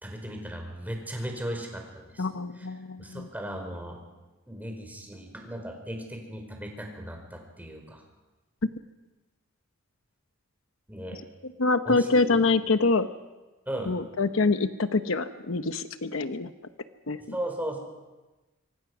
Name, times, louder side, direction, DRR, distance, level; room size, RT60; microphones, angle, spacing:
voice 1, 0.0-2.3 2.5-2.7 3.0-4.0 4.5-8.0 10.9-11.2 11.8-12.4 13.7-13.9 17.3-17.8, right 1 dB, 10° right, 2 dB, 4.9 m, -36 dB
voice 2, 2.2-3.3 11.6-13.1 13.9-16.5 17.1-17.2, left 3 dB, 75° left, 10 dB, 1.0 m, -25 dB
26.0 x 24.5 x 6.2 m, 1.1 s
head